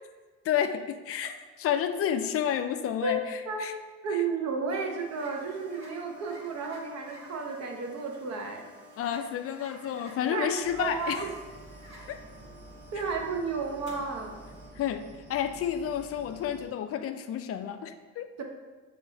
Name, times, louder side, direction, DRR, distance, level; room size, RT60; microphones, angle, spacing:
voice 1, 0.4-3.7 4.1-4.2 9.0-11.3 12.1-12.2 14.8-18.3, left 9 dB, 40° left, 8 dB, 0.4 m, -30 dB
voice 2, 4.0-8.6 10.3-11.3 12.9-14.3 18.4-18.5, right 4 dB, 45° right, 2 dB, 0.9 m, -32 dB
sound 1, 4.7-14.7, equal, 65° right, 1.4 m, -51 dB
sound 2, 10.6-16.7, right 2 dB, 25° right, 1.3 m, -50 dB
6.9 x 2.5 x 2.8 m, 1.4 s
hypercardioid pair, 70°, 36 cm